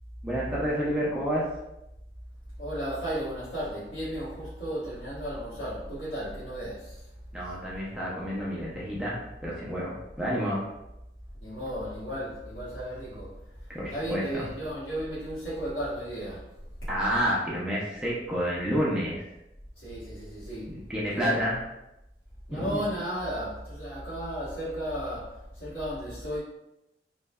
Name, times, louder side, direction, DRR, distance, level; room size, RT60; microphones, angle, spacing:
voice 1, 0.2-1.4 7.3-10.7 13.7-14.5 16.9-19.2 20.7-21.6 22.5-22.8, equal, 5° right, -7 dB, 0.5 m, -29 dB
voice 2, 2.6-7.0 11.4-13.4 13.9-16.5 19.8-20.7 21.1-21.4 22.5-26.4, equal, 90° left, -11 dB, 1.1 m, -34 dB
3.0 x 2.1 x 2.2 m, 0.88 s
head